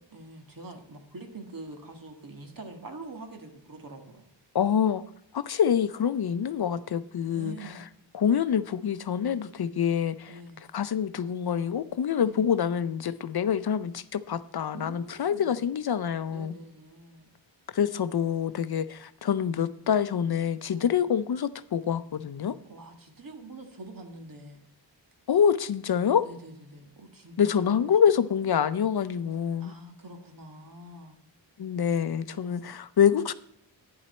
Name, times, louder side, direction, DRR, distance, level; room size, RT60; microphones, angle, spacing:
voice 1, 0.1-4.3 7.4-7.9 10.3-10.7 12.2-12.5 14.7-15.6 16.3-17.3 20.7-20.9 22.7-24.6 26.2-27.8 29.6-31.2 32.3-32.7, right 2 dB, 45° right, 1.9 m, -45 dB
voice 2, 4.5-5.0 5.3-7.5 8.1-10.3 10.7-16.5 17.7-22.6 25.3-26.3 27.4-29.7 31.6-33.3, left 8 dB, 55° left, 0.6 m, -26 dB
11.5 x 9.8 x 4.3 m
wide cardioid pair, 150°, 45 cm